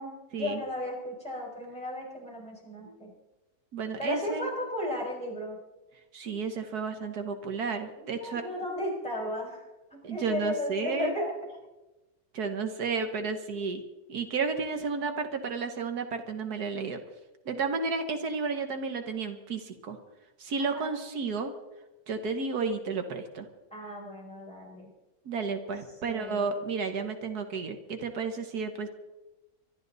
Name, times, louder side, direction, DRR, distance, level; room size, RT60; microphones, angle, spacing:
voice 1, 0.0-3.1 4.0-5.6 8.0-9.6 10.1-11.3 20.6-20.9 23.7-24.9 26.0-26.5, left 1 dB, 5° left, -2 dB, 6.0 m, -35 dB
voice 2, 3.7-4.5 6.1-8.4 10.0-11.1 12.3-13.8 14.1-17.0 17.5-20.0 20.4-21.5 22.1-23.5 25.3-28.9, right 4 dB, 85° right, 7 dB, 1.8 m, -32 dB
24.5 x 12.5 x 4.0 m, 1.1 s
omnidirectional pair, 1.6 m